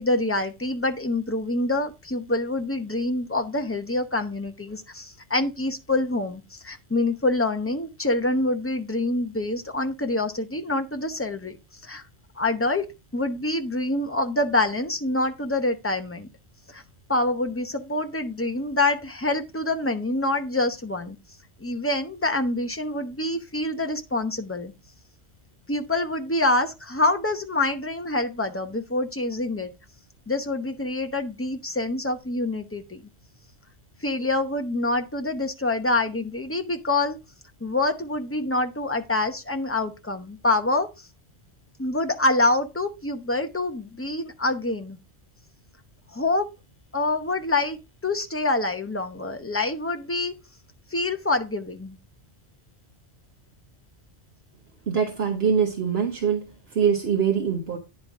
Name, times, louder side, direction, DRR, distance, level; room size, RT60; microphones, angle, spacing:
voice 1, 0.0-11.6 11.8-12.0 12.3-12.9 13.1-16.3 16.7-16.8 17.1-21.2 21.6-24.7 25.7-29.7 30.3-33.0 34.0-37.2 37.6-41.1 41.8-45.0 46.1-46.5 46.9-50.3 50.9-52.0, left 2 dB, 15° left, 0.7 m, -26 dB
voice 2, 54.9-56.5 56.7-57.8, right 7 dB, 65° right, 1.2 m, -23 dB
9.8 x 5.4 x 3.6 m
omnidirectional pair, 1.1 m